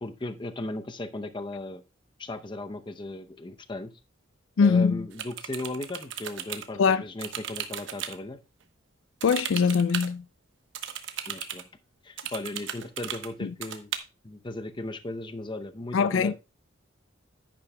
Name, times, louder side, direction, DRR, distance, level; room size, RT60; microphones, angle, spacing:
voice 1, 0.0-1.8 2.2-3.9 4.6-8.4 11.3-11.7 12.0-13.9 14.2-16.3, left 2 dB, 25° left, 0.6 m, -36 dB
voice 2, 4.6-5.0 6.8-7.0 9.2-10.2 13.4-13.5 15.9-16.3, left 5 dB, 85° left, 0.4 m, -22 dB
sound 1, 5.1-6.7 7.2-8.2 9.2-10.1 10.7-11.6 12.2-13.3 13.6-14.0, right 9 dB, 80° right, 1.0 m, -36 dB
10.0 x 9.9 x 2.2 m
head